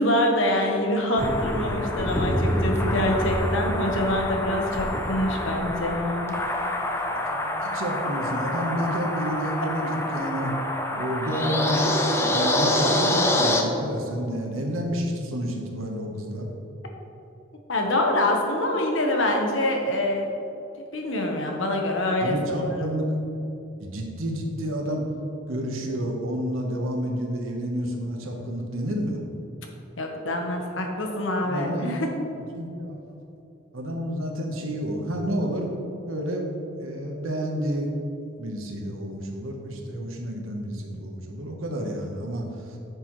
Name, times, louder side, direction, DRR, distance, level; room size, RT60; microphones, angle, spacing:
voice 1, 0.0-6.3 17.7-20.3 20.9-22.9 30.0-32.1, left 1 dB, 70° left, 2 dB, 1.2 m, -25 dB
sound 1, 1.2-13.6, left 1 dB, 15° left, 0.6 m, -26 dB
voice 2, 7.0-10.5 10.9-12.0 12.3-16.5 22.2-23.2 23.8-25.1 25.5-29.2 31.4-32.0 32.5-33.2 33.7-35.7 36.0-36.4 36.8-37.9 38.4-42.8, equal, 90° right, 1 dB, 1.2 m, -30 dB
9.7 x 6.9 x 3.2 m, 2.9 s
head